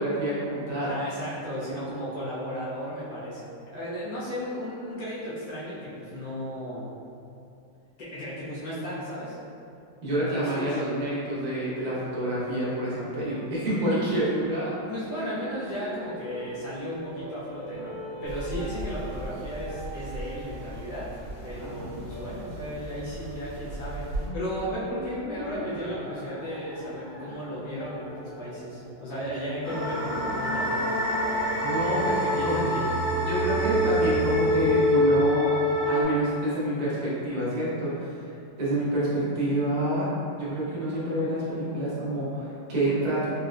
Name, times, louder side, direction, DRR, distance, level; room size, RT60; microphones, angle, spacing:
voice 1, 0.0-0.9 10.0-14.7 21.6-22.0 31.6-32.2 32.4-32.6 33.3-35.5 35.9-38.1 38.6-40.1 40.4-43.3, right 1 dB, 85° right, -8 dB, 0.3 m, -28 dB
voice 2, 0.8-6.9 8.0-9.4 10.1-10.8 14.9-21.0 21.4-24.0 24.3-30.8 32.1-32.9, equal, 70° left, -9 dB, 1.3 m, -35 dB
sound 1, 11.3-29.8, equal, 10° left, 0.9 m, -43 dB
sound 2, 18.3-24.3, right 1 dB, 55° right, 1.0 m, -38 dB
sound 3, 29.6-36.0, left 1 dB, 35° left, 0.9 m, -25 dB
4.1 x 2.1 x 2.4 m, 2.6 s
omnidirectional pair, 2.0 m